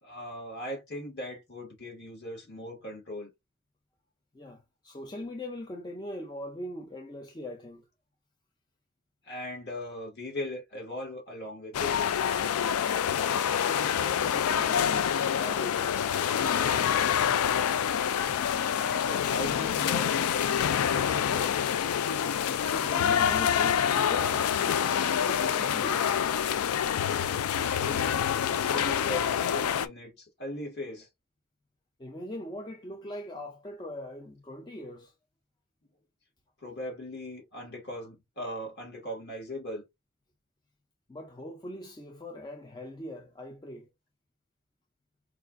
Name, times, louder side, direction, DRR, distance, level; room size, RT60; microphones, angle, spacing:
voice 1, 0.0-3.3 9.3-12.0 18.7-21.5 27.6-31.1 36.6-39.8, left 1 dB, 50° left, 1.8 m, -39 dB
voice 2, 4.3-7.9 13.6-17.1 22.7-24.8 25.2-26.2 32.0-35.1 41.1-43.9, left 1 dB, 20° left, 0.5 m, -41 dB
sound 1, 11.7-29.9, left 8 dB, 90° left, 0.4 m, -27 dB
4.7 x 2.4 x 2.4 m
head